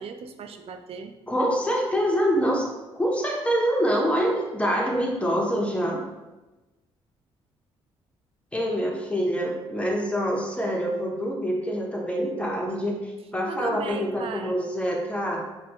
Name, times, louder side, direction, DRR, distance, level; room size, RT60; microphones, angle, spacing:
voice 1, 0.0-1.2 13.5-14.6, right 6 dB, 60° right, 7 dB, 0.4 m, -37 dB
voice 2, 1.3-6.0 8.5-15.4, equal, 10° left, -2 dB, 0.8 m, -25 dB
4.0 x 2.3 x 3.0 m, 1.1 s
supercardioid pair, 70°, 11 cm